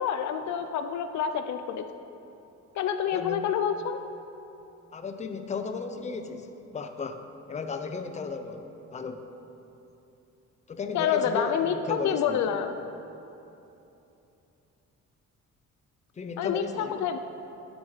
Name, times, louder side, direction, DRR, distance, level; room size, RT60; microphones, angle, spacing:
voice 1, 0.0-1.9 2.8-4.0 10.9-12.7 16.4-17.2, left 8 dB, 70° left, 8 dB, 0.5 m, -28 dB
voice 2, 3.1-3.5 4.9-7.2 7.5-8.6 8.9-9.2 10.7-12.4 16.2-17.0, left 4 dB, 25° left, 7 dB, 0.6 m, -35 dB
12.5 x 4.7 x 3.9 m, 2.9 s
cardioid pair, 90°, 30 cm